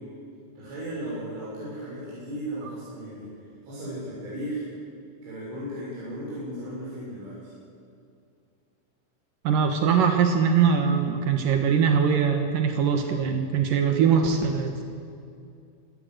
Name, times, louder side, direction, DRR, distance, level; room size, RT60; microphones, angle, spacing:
voice 1, 0.6-3.3 3.6-4.7 5.2-7.5, right 1 dB, 70° right, -8 dB, 9.1 m, -35 dB
voice 2, 9.4-14.8, right 6 dB, 85° right, 5 dB, 1.9 m, -22 dB
24.5 x 17.5 x 7.8 m, 2.4 s
omnidirectional pair, 5.9 m